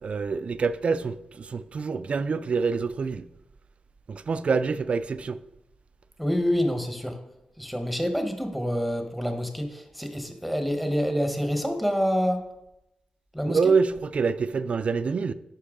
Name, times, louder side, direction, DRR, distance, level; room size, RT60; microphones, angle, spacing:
voice 1, 0.0-3.3 4.1-5.4 13.5-15.3, right 5 dB, 50° right, 0.4 m, -26 dB
voice 2, 6.2-7.2 7.6-12.4 13.3-13.7, equal, ahead, 1.0 m, -27 dB
9.9 x 5.5 x 3.7 m
wide cardioid pair, 130°, 3 cm